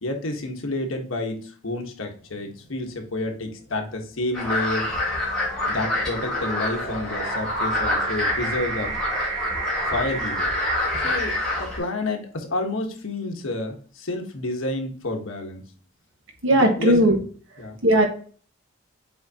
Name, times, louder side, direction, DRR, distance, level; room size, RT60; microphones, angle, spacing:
voice 1, 0.0-4.9 5.7-8.9 9.9-10.5 11.0-15.6 16.5-17.2 17.6-17.8, left 2 dB, 90° left, 3 dB, 1.3 m, -30 dB
sound 1, 2.3-2.7 3.5-11.7, right 4 dB, 35° right, 1.4 m, -33 dB
sound 2, 4.3-11.8, left 2 dB, 5° left, 2.1 m, -27 dB
voice 2, 16.4-17.1 17.8-18.1, right 1 dB, 80° right, 2 dB, 1.7 m, -17 dB
7.7 x 4.5 x 2.9 m, 0.43 s
head